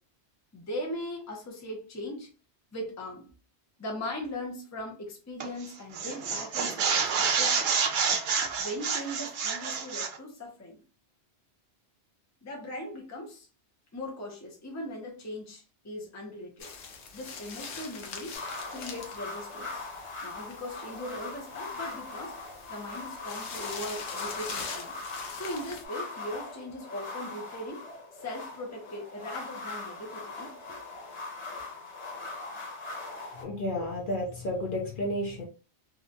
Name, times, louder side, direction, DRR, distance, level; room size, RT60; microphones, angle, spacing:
voice 1, 0.5-2.3 2.7-3.3 3.8-7.7 8.4-10.8 12.4-13.5 13.9-16.7 17.1-18.3 18.7-19.9 20.2-22.4 22.7-24.9 25.3-30.8, left 1 dB, 20° left, 0.5 m, -39 dB
sound 1, 5.4-5.7 5.9-10.2, right 6 dB, 60° right, 0.6 m, -28 dB
sound 2, 16.6-25.9, left 5 dB, 90° left, 1.0 m, -43 dB
sound 3, 18.3-33.4, left 3 dB, 75° left, 1.3 m, -40 dB
voice 2, 33.4-35.4, left 1 dB, 55° left, 0.7 m, -31 dB
2.7 x 2.2 x 2.6 m
omnidirectional pair, 1.2 m